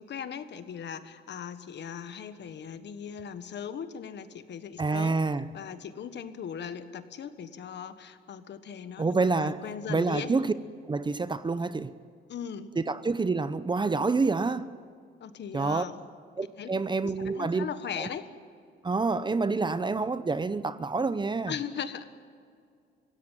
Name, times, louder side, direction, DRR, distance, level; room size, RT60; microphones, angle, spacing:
voice 1, 0.0-5.2 5.5-10.3 12.3-12.7 15.2-16.0 16.6-16.7 17.0-18.3 21.5-22.0, left 8 dB, 60° left, 1.5 m, -38 dB
voice 2, 4.8-5.5 9.0-10.5 10.9-11.9 12.8-14.7 15.5-15.8 16.4-17.7 18.0-18.1 18.8-21.5, right 4 dB, 25° right, 0.8 m, -27 dB
25.5 x 16.5 x 9.2 m
cardioid pair, 90°, 20 cm